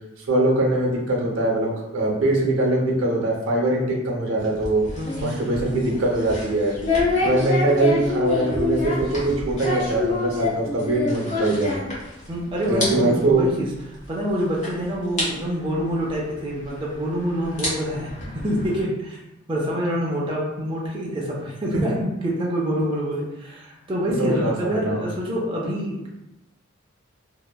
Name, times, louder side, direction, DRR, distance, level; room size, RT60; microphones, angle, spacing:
voice 1, 0.2-4.8 5.2-6.8 7.2-11.8 12.6-13.5 21.7-21.8 24.2-25.0, right 2 dB, 80° right, -1 dB, 0.6 m, -22 dB
sound 1, 4.4-12.3 12.6-12.9 13.2-13.3 14.0-14.1 14.6-14.7 15.2-15.3 16.6-16.7 17.4-18.8, left 3 dB, 35° left, 0.9 m, -26 dB
voice 2, 5.0-6.0 12.3-13.7 14.1-19.2 19.5-26.1, equal, 25° right, -4 dB, 0.4 m, -26 dB
2.8 x 2.1 x 2.2 m, 0.92 s
head